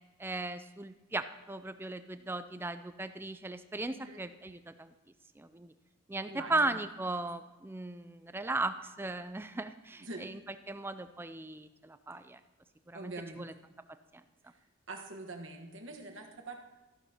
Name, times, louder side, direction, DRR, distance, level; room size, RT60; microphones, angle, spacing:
voice 1, 0.2-4.9 5.4-5.7 6.1-10.4 10.7-12.4 12.9-13.5 14.1-14.2, right 2 dB, 10° right, 11 dB, 0.3 m, -37 dB
voice 2, 3.9-4.2 6.3-6.8 10.0-10.3 12.9-13.5 14.9-16.6, right 2 dB, 60° right, 2 dB, 1.4 m, -44 dB
13.5 x 12.0 x 2.9 m, 1.2 s
head